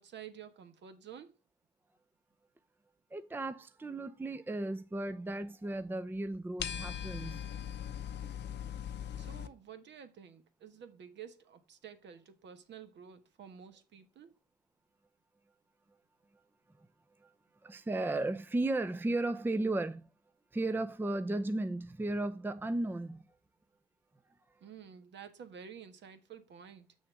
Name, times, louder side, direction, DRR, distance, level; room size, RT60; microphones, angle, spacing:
voice 1, 0.0-1.3 9.2-14.4 24.6-26.9, right 8 dB, 65° right, 1.4 m, -51 dB
voice 2, 3.1-7.4 17.2-17.3 17.6-20.0 20.5-23.3, right 2 dB, 10° right, 0.6 m, -35 dB
sound 1, 6.6-9.5, left 9 dB, 60° left, 0.8 m, -40 dB
7.4 x 6.3 x 4.6 m
cardioid pair, 90°, 20 cm